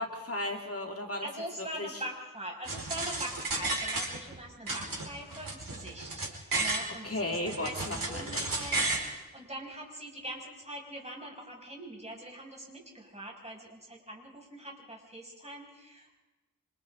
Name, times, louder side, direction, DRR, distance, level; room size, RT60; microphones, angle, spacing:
voice 1, 0.0-1.3 1.6-2.0 7.0-8.7, left 1 dB, 40° left, 2 dB, 2.2 m, -35 dB
voice 2, 1.2-6.3 6.6-16.2, right 1 dB, 20° right, -1 dB, 6.0 m, -43 dB
sound 1, 2.6-4.4 4.7-6.9 7.3-9.1, right 2 dB, 70° right, 4.4 m, -33 dB
28.0 x 26.0 x 3.8 m, 1.1 s
wide cardioid pair, 95°, 35 cm